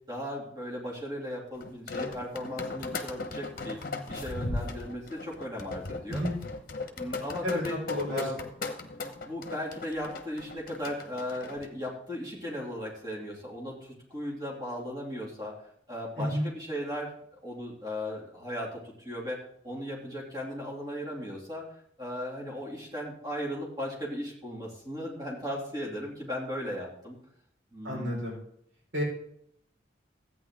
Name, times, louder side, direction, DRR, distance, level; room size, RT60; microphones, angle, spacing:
voice 1, 0.1-3.8 4.1-6.2 6.9-7.8 8.1-8.4 9.3-15.5 15.9-17.1 17.4-21.7 22.0-27.2 27.7-28.1, equal, 20° right, -3 dB, 2.7 m, -37 dB
sound 1, 1.6-11.7, left 3 dB, 45° left, 1.1 m, -37 dB
voice 2, 7.4-8.2 16.2-16.4 27.8-28.4 28.9-29.0, equal, 70° right, -5 dB, 4.7 m, -31 dB
13.5 x 9.2 x 3.7 m, 0.70 s
head